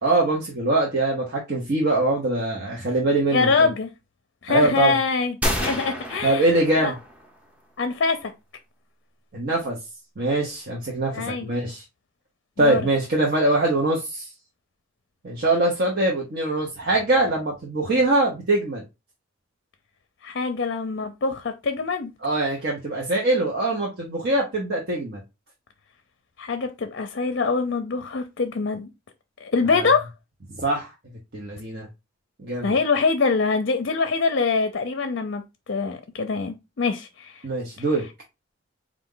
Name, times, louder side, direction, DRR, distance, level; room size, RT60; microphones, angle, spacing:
voice 1, 0.0-3.7 4.5-4.9 6.2-6.9 9.3-9.8 10.2-11.8 12.6-14.3 15.2-18.8 22.2-25.2 29.7-29.9 30.6-30.9 31.3-31.9 32.4-32.7 37.4-38.0, right 2 dB, 50° right, 1.0 m, -23 dB
voice 2, 3.3-3.9 4.4-6.5 6.8-7.0 7.8-8.3 11.1-11.5 12.6-12.8 20.2-22.1 26.4-28.9 29.4-30.1 32.6-37.4, left 4 dB, 60° left, 0.5 m, -24 dB
sound 1, 5.4-7.3, equal, 5° right, 0.7 m, -29 dB
4.3 x 2.5 x 3.7 m
head